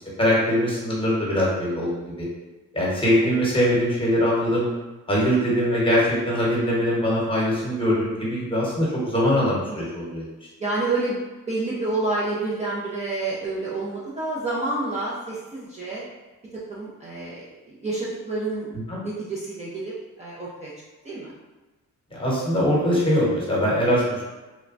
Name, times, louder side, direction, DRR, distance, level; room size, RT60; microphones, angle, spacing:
voice 1, 0.2-1.9 2.2-2.3 2.7-4.7 5.1-10.3 18.9-19.0 22.1-24.0, equal, 15° left, -5 dB, 1.1 m, -22 dB
voice 2, 10.6-11.2 11.5-16.1 16.5-20.7 21.0-21.3, right 2 dB, 20° right, -7 dB, 0.5 m, -29 dB
3.1 x 2.1 x 2.5 m, 1.1 s
cardioid pair, 90°, 30 cm